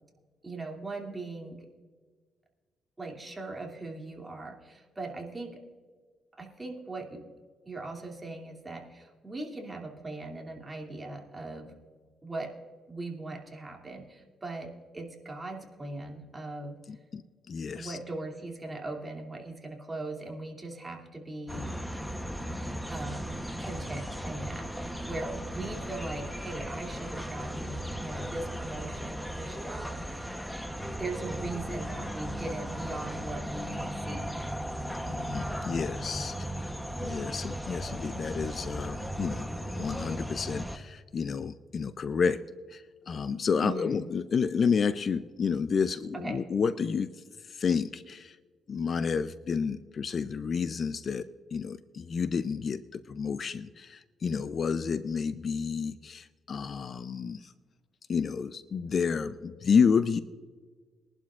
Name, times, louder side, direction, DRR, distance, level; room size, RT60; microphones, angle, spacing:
voice 1, 0.4-1.7 3.0-5.6 6.4-7.2 7.7-11.8 12.2-12.5 12.9-16.8 17.7-21.7 22.9-30.3 31.0-34.5 43.6-44.0 46.1-46.4, right 2 dB, 20° right, 1 dB, 2.6 m, -40 dB
voice 2, 16.9-18.0 35.1-36.7 37.0-42.4 42.7-47.1 47.5-48.4 48.7-57.5 58.1-60.2, left 6 dB, 45° left, 13 dB, 0.5 m, -30 dB
sound 1, 21.5-40.8, equal, ahead, 0.9 m, -36 dB
23.0 x 11.5 x 2.4 m, 1.5 s
cardioid pair, 90°, 0 cm